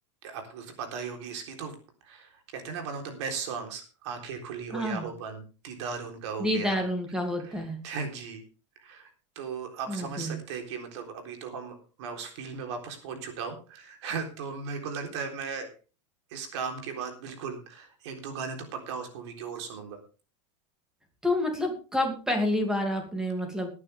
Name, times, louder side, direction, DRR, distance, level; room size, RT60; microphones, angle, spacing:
voice 1, 0.2-1.7 2.0-6.8 7.4-7.5 7.8-8.4 8.8-9.1 9.4-15.7 16.3-20.0, right 5 dB, 65° right, 4 dB, 3.7 m, -37 dB
voice 2, 4.7-5.1 6.4-7.8 9.9-10.4 21.2-23.7, left 1 dB, 5° right, 4 dB, 2.7 m, -28 dB
19.5 x 9.6 x 3.5 m, 0.34 s
supercardioid pair, 165°, 16 cm